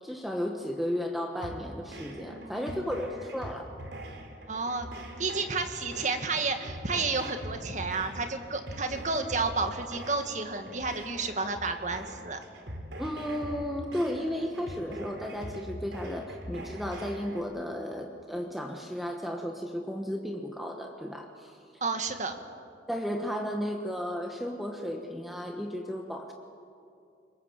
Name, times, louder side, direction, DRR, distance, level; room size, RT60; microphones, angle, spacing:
voice 1, 0.0-3.7 13.0-21.6 22.9-26.3, equal, ahead, 2 dB, 1.2 m, -34 dB
sound 1, 1.4-17.4, right 1 dB, 75° right, 3.2 m, -43 dB
voice 2, 2.3-3.0 4.5-4.9 5.2-12.4 21.8-22.4, right 3 dB, 40° right, 6 dB, 1.9 m, -31 dB
26.5 x 23.0 x 7.4 m, 2.5 s
head